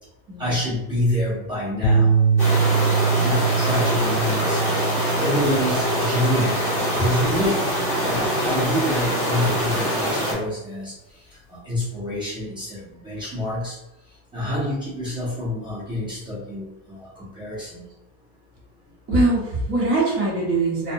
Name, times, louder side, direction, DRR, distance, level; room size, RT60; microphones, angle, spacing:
voice 1, 0.4-2.1 2.7-4.7 5.2-6.6 7.0-7.6 8.1-10.9 11.5-13.8 14.3-17.9, left 1 dB, 10° right, -8 dB, 0.4 m, -27 dB
sound 1, 1.8-10.2, right 5 dB, 75° left, 0.7 m, -24 dB
sound 2, 2.4-10.3, equal, 5° left, 1.4 m, -24 dB
voice 2, 19.1-20.9, right 2 dB, 35° right, -4 dB, 0.8 m, -22 dB
2.6 x 2.1 x 2.7 m, 0.93 s
cardioid pair, 175°, 41 cm